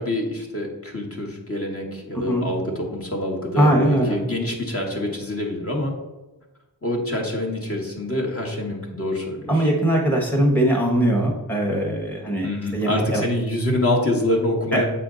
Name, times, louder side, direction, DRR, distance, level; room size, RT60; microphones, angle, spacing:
voice 1, 0.0-5.9 6.8-9.7 12.4-14.8, left 1 dB, 35° left, 0 dB, 1.4 m, -26 dB
voice 2, 2.1-2.4 3.6-4.2 9.5-12.5 12.7-13.2 14.7-14.8, right 1 dB, 5° left, -1 dB, 1.0 m, -20 dB
7.2 x 4.4 x 3.8 m, 1.1 s
wide cardioid pair, 80°, 40 cm